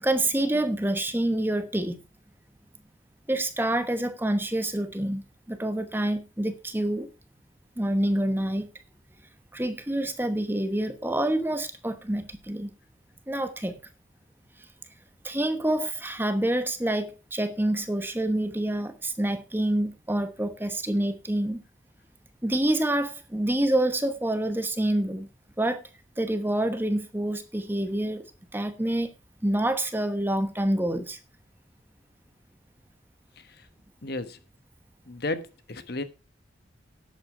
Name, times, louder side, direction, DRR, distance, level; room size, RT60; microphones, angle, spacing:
voice 1, 0.0-2.0 3.3-5.2 5.5-7.1 7.8-8.7 9.5-12.7 13.3-13.7 15.2-21.6 22.4-25.3 25.6-25.8 26.2-28.2 28.5-29.1 29.4-31.2, right 1 dB, 10° right, 1.0 m, -27 dB
voice 2, 33.4-33.7 34.0-34.4 35.1-36.0, left 2 dB, 55° left, 1.2 m, -34 dB
11.5 x 8.2 x 4.8 m
head